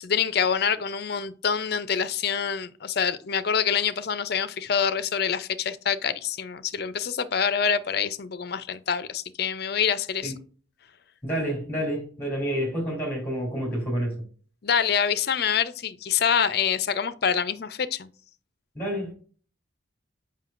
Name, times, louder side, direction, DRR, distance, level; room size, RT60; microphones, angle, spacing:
voice 1, 0.0-10.3 14.6-18.1, left 7 dB, 55° left, 0.5 m, -26 dB
voice 2, 11.2-14.1 18.7-19.1, equal, 10° left, 3.1 m, -29 dB
7.5 x 5.6 x 2.5 m
head